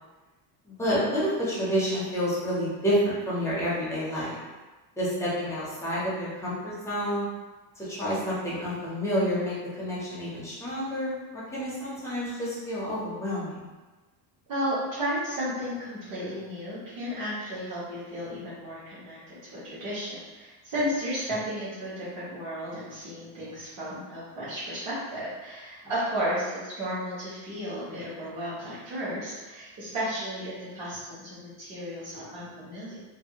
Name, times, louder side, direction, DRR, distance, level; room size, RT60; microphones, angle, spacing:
voice 1, 0.7-4.4 5.0-7.2 7.8-13.7, equal, 5° left, -8 dB, 0.5 m, -29 dB
voice 2, 14.5-33.0, equal, 40° right, -12 dB, 1.1 m, -33 dB
2.6 x 2.5 x 2.8 m, 1.2 s
cardioid pair, 160°, 46 cm